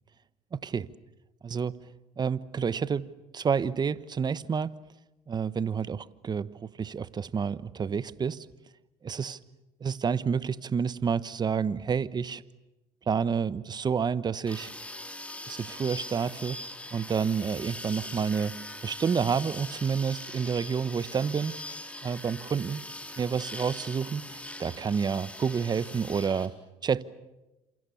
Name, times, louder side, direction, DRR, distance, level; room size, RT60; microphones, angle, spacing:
voice 1, 0.5-0.9 1.4-1.7 2.2-3.1 3.3-4.7 5.3-8.4 9.0-9.4 9.8-12.4 13.1-14.7 15.5-16.6 16.9-18.5 18.8-21.5 22.0-22.8 23.2-26.5 26.8-27.0, right 6 dB, 35° right, 16 dB, 1.1 m, -29 dB
sound 1, 14.5-26.5, left 1 dB, 10° left, 4.2 m, -41 dB
29.0 x 27.5 x 7.1 m, 1.0 s
supercardioid pair, 85°, 13 cm